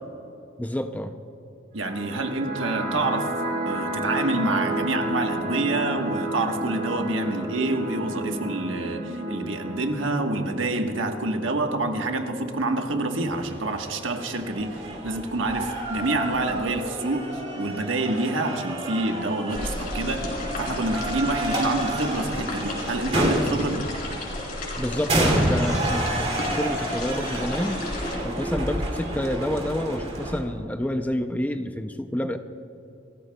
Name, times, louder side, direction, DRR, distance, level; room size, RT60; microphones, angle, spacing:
voice 1, 0.6-1.1 24.8-27.8 28.2-32.4, left 1 dB, 10° left, 8 dB, 0.4 m, -28 dB
voice 2, 1.7-3.3 3.7-23.8, right 2 dB, 80° right, 4 dB, 1.2 m, -27 dB
sound 1, 1.8-12.8, right 1 dB, 50° right, 2.0 m, -32 dB
sound 2, 13.3-30.4, right 1 dB, 35° right, 2.4 m, -30 dB
sound 3, 19.5-28.2, left 1 dB, 45° left, 3.3 m, -33 dB
28.0 x 14.0 x 2.3 m, 2.9 s
head